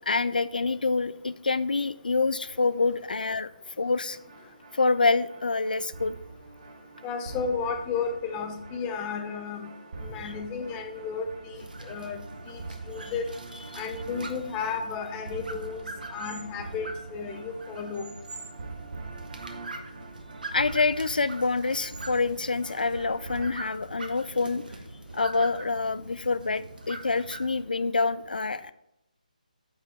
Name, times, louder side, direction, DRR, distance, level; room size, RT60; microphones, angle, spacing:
voice 1, 0.1-3.5 3.8-4.2 4.7-6.2 10.2-10.3 20.5-24.6 25.1-28.7, left 3 dB, 90° left, 14 dB, 0.3 m, -26 dB
sound 1, 4.1-23.5, right 3 dB, 50° right, 1.0 m, -44 dB
voice 2, 7.0-9.7 10.0-12.2 12.5-12.6 12.9-13.2 13.8-18.0, left 5 dB, 15° left, 5 dB, 0.6 m, -33 dB
sound 2, 11.5-27.6, right 2 dB, 75° right, 1.2 m, -43 dB
8.8 x 5.6 x 3.4 m, 0.84 s
figure-of-eight pair, 160°, 5 cm